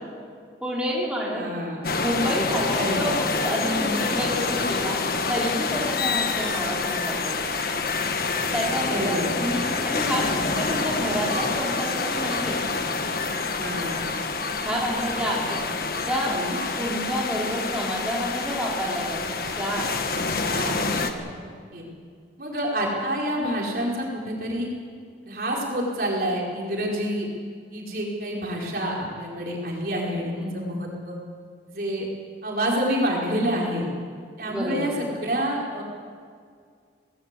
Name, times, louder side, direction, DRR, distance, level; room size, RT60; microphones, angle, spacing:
voice 1, 0.6-1.5 2.0-5.0 5.3-7.4 8.5-12.6 14.6-15.6 16.1-16.4 16.8-19.9 30.4-30.8 34.5-34.9, equal, 5° right, -5 dB, 3.9 m, -29 dB
voice 2, 1.3-1.8 2.8-3.1 3.6-4.1 8.9-9.3 13.6-14.1 16.2-16.6 20.4-21.8 22.4-24.7 25.2-27.3 27.7-31.1 31.7-32.1 32.4-33.9 34.4-35.8, equal, 55° right, -2 dB, 4.9 m, -28 dB
sound 1, 1.8-21.1, left 4 dB, 55° left, 1.4 m, -27 dB
21.5 x 19.5 x 8.3 m, 2.1 s
head